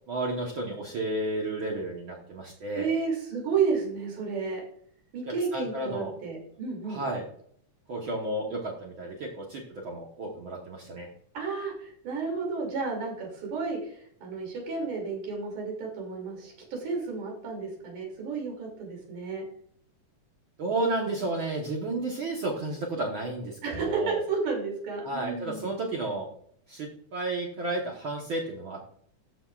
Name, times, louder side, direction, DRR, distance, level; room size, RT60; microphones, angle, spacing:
voice 1, 0.1-2.9 5.5-6.1 6.9-7.3 7.9-11.1 20.6-24.2 25.0-26.3 26.7-28.8, right 2 dB, 60° right, -1 dB, 1.4 m, -32 dB
voice 2, 2.8-4.6 5.1-7.0 11.3-19.4 23.6-25.7, right 5 dB, 80° right, 0 dB, 4.1 m, -32 dB
13.0 x 6.2 x 2.4 m, 0.63 s
omnidirectional pair, 3.5 m